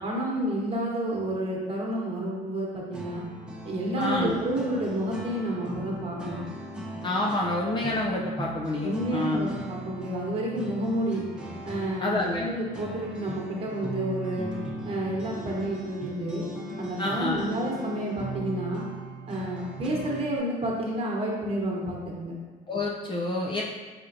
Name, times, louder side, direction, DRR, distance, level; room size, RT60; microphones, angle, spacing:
voice 1, 0.0-3.2 3.6-6.4 8.8-11.2 11.6-14.5 14.8-16.5 16.8-18.9 19.3-22.4, right 1 dB, 35° right, -2 dB, 1.2 m, -30 dB
sound 1, 2.9-20.4, right 2 dB, 5° right, 0.8 m, -39 dB
voice 2, 4.0-4.4 7.0-9.5 12.0-12.5 17.0-17.5 22.7-23.6, left 2 dB, 30° left, -2 dB, 0.5 m, -28 dB
4.4 x 3.8 x 2.6 m, 1.4 s
cardioid pair, 110°, 17 cm